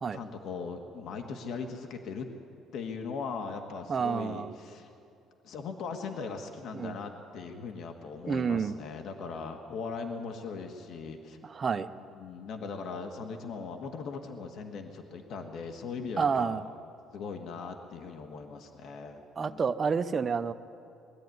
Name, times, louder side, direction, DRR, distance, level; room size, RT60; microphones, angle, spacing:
voice 1, 0.1-2.3 2.7-4.9 5.4-11.4 12.1-16.6 17.1-19.6, left 5 dB, 60° left, 5 dB, 1.7 m, -39 dB
voice 2, 3.9-4.5 6.7-7.0 8.3-8.8 11.4-11.9 16.2-16.7 19.4-20.5, right 6 dB, 30° right, 10 dB, 0.8 m, -29 dB
21.0 x 13.0 x 9.5 m, 2.7 s
cardioid pair, 120°, 0 cm